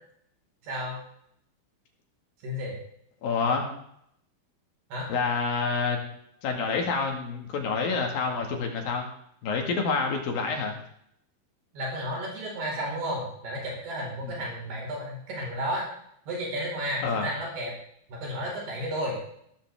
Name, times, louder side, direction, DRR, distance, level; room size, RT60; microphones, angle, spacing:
voice 1, 0.6-1.0 2.4-2.8 4.9-5.1 11.7-15.9 16.3-17.7 18.1-19.2, equal, 80° right, -3 dB, 6.9 m, -32 dB
voice 2, 3.2-3.7 5.1-6.0 6.4-9.1 9.4-10.7 14.2-14.4 17.0-17.3, left 4 dB, 65° left, 2 dB, 3.7 m, -28 dB
17.0 x 14.0 x 3.7 m, 0.71 s
omnidirectional pair, 4.6 m